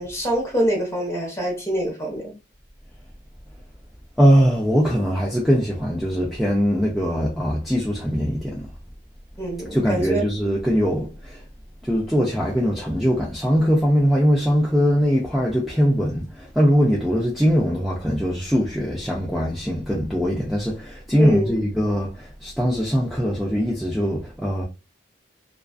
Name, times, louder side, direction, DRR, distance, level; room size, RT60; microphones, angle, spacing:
voice 1, 0.0-2.4 9.4-10.2 21.2-21.6, equal, 15° left, 0.9 m, -25 dB
voice 2, 4.2-8.7 9.7-11.4 11.8-24.6, equal, ahead, 0.4 m, -21 dB
2.4 x 2.4 x 2.3 m
head